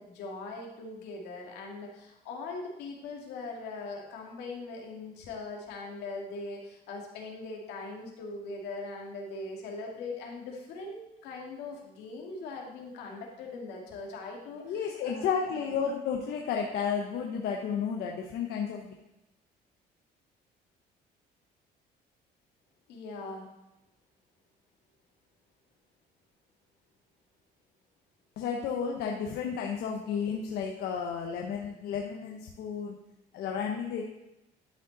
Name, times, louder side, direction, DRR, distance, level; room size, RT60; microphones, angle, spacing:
voice 1, 0.0-15.7 22.9-23.5, left 3 dB, 90° left, 0 dB, 2.0 m, -41 dB
voice 2, 14.6-18.9 28.4-33.0 33.3-34.0, left 6 dB, 70° left, 2 dB, 0.9 m, -32 dB
11.5 x 5.4 x 4.0 m, 0.93 s
cardioid pair, 110°, 17 cm